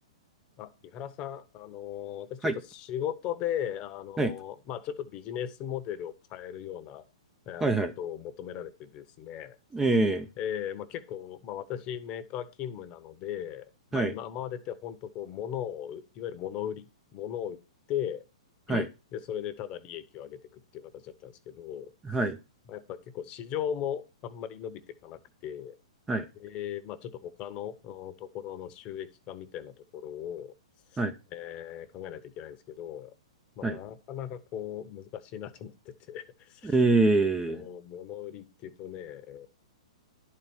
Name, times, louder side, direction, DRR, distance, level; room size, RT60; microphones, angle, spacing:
voice 1, 0.6-7.0 7.5-7.7 8.0-9.6 10.4-13.7 13.9-17.6 17.9-18.2 18.7-18.8 19.1-21.9 22.7-25.7 26.4-30.5 31.3-33.1 33.6-36.8 37.5-39.5, left 10 dB, 30° left, 0.9 m, -38 dB
voice 2, 7.6-7.9 9.7-10.3 13.9-14.1 18.7-18.9 22.0-22.4 26.1-26.3 31.0-31.1 33.6-33.8 36.6-37.6, right 2 dB, 10° right, 0.5 m, -25 dB
10.5 x 4.4 x 5.4 m
hypercardioid pair, 140°, 3 cm